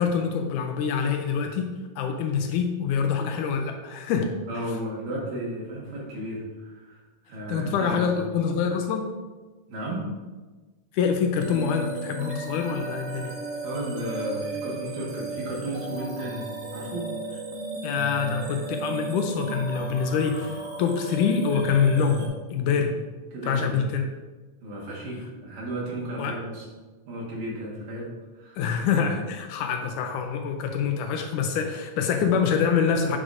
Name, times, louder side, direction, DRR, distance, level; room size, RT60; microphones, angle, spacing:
voice 1, 0.0-4.3 7.5-9.1 10.9-13.3 17.8-22.2 22.5-22.9 23.4-24.1 26.2-26.4 28.6-33.2, left 6 dB, 80° left, 4 dB, 2.0 m, -25 dB
voice 2, 4.5-8.0 9.7-10.1 13.6-17.1 23.3-23.8 24.6-26.6 27.1-28.6, right 1 dB, 75° right, -4 dB, 3.1 m, -34 dB
sound 1, 11.4-22.3, right 3 dB, 60° right, 1.7 m, -35 dB
8.9 x 4.9 x 2.6 m, 1.3 s
omnidirectional pair, 3.8 m